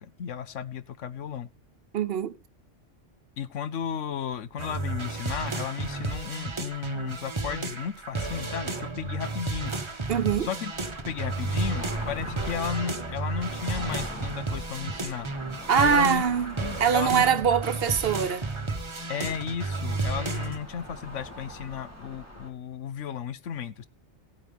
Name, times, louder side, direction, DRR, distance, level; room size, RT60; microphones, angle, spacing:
voice 1, 0.0-1.5 3.4-9.7 10.4-10.7 11.0-15.3 15.7-16.2 16.6-17.3 19.1-23.9, left 8 dB, 90° left, 1.2 m, -34 dB
voice 2, 1.9-2.3 10.1-10.5 15.7-16.5 16.8-18.5, right 7 dB, 55° right, 1.0 m, -23 dB
sound 1, 4.6-20.6, right 3 dB, 25° right, 1.0 m, -33 dB
sound 2, 6.4-22.5, equal, 10° left, 2.9 m, -44 dB
15.5 x 9.2 x 3.5 m
omnidirectional pair, 1.2 m